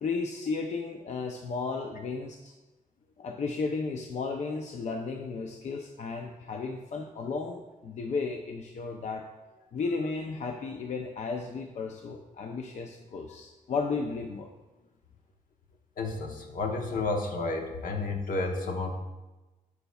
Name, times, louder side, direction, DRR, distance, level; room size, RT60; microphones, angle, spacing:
voice 1, 0.0-2.5 3.2-9.3 9.7-14.5, left 4 dB, 55° left, 3 dB, 0.5 m, -34 dB
voice 2, 16.0-19.0, left 3 dB, 75° left, 3 dB, 1.0 m, -31 dB
9.4 x 6.9 x 2.3 m, 1.1 s
wide cardioid pair, 115°, 14 cm